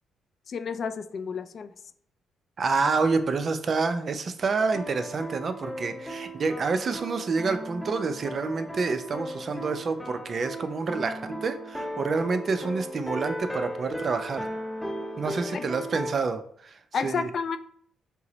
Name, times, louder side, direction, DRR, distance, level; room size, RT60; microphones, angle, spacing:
voice 1, 0.5-1.7 15.5-15.7 16.9-17.6, left 5 dB, 50° left, 11 dB, 0.3 m, -31 dB
voice 2, 2.6-11.1 11.4-14.5 15.2-17.3, right 4 dB, 45° right, 9 dB, 0.4 m, -28 dB
sound 1, 4.7-16.1, equal, 5° left, 0.6 m, -36 dB
5.6 x 2.0 x 3.9 m, 0.63 s
cardioid pair, 90°, 0 cm